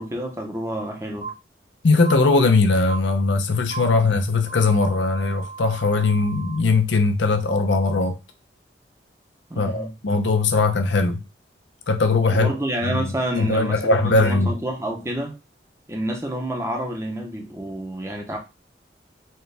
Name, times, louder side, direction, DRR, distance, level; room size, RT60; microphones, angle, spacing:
voice 1, 0.0-1.3 9.5-9.9 12.3-15.4 15.9-18.4, right 1 dB, 15° right, 0.7 m, -28 dB
sound 1, 1.2-1.3 2.0-2.1 2.9-3.0 3.7-3.8 4.5-6.6, right 5 dB, 55° right, 1.1 m, -36 dB
voice 2, 1.8-8.2 9.6-11.2 11.9-12.5 12.9-14.5, left 3 dB, 90° left, 0.6 m, -20 dB
4.3 x 2.3 x 3.3 m
head